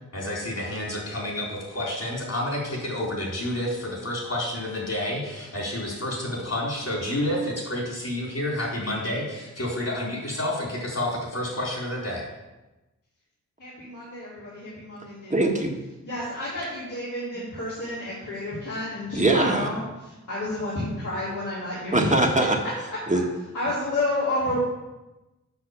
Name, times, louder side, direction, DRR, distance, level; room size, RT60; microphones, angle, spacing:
voice 1, 0.1-12.2, left 1 dB, 55° left, -3 dB, 4.1 m, -29 dB
voice 2, 13.6-15.5 16.0-22.2 23.5-24.6, left 1 dB, 75° left, -10 dB, 3.6 m, -30 dB
voice 3, 15.3-15.8 19.1-19.7 21.9-22.6 23.1-23.2, right 2 dB, 25° right, 1 dB, 1.5 m, -21 dB
8.0 x 6.5 x 7.3 m, 1.1 s
wide cardioid pair, 80°, 31 cm